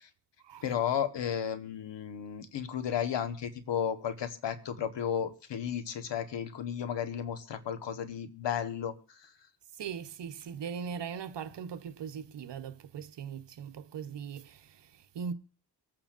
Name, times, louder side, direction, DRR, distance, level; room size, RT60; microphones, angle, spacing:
voice 1, 0.6-8.9, left 8 dB, 85° left, 1.2 m, -33 dB
voice 2, 9.7-15.3, right 7 dB, 80° right, 0.9 m, -40 dB
24.5 x 8.9 x 2.5 m
cardioid pair, 70°, 42 cm